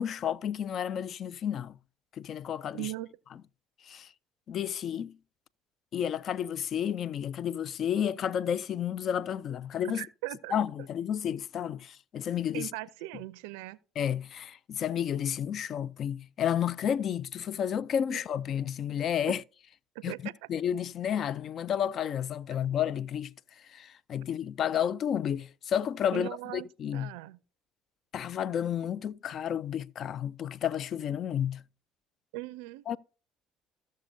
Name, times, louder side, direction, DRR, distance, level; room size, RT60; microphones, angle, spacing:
voice 1, 0.0-1.8 2.2-2.9 3.8-4.1 4.5-5.1 5.9-10.0 10.5-12.7 14.0-19.4 20.0-20.1 20.5-23.3 23.6-27.1 28.1-31.6 32.9-33.0, left 9 dB, 55° left, 0.3 m, -31 dB
voice 2, 2.7-3.1 9.9-10.5 12.5-13.8 18.1-18.2 20.0-20.2 26.1-26.7 26.9-27.4 32.3-33.0, right 18 dB, 80° right, 0.4 m, -39 dB
14.5 x 6.4 x 2.6 m
hypercardioid pair, 60°, 0 cm